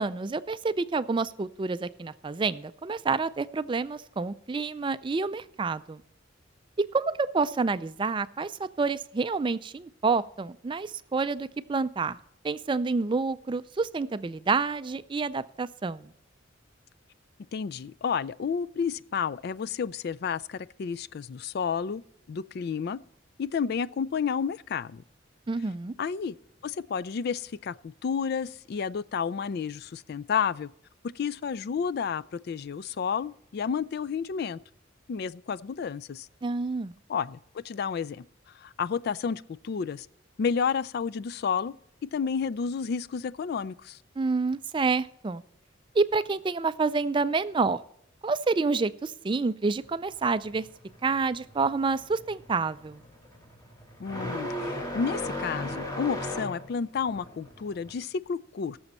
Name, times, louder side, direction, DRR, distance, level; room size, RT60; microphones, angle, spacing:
voice 1, 0.0-6.0 6.8-12.2 12.4-16.1 25.5-25.9 36.4-36.9 44.2-45.4 45.9-47.8 48.2-50.7 51.0-53.0, right 4 dB, 25° right, 0.4 m, -28 dB
voice 2, 17.5-22.0 22.3-23.0 23.4-25.0 26.0-26.3 26.6-27.7 28.0-30.7 31.2-34.6 35.1-36.3 37.1-38.2 38.6-40.1 40.4-41.7 42.1-44.0 54.0-58.8, left 6 dB, 55° left, 0.3 m, -31 dB
sound 1, 49.8-57.9, left 1 dB, 20° left, 2.0 m, -37 dB
17.0 x 7.1 x 4.2 m
head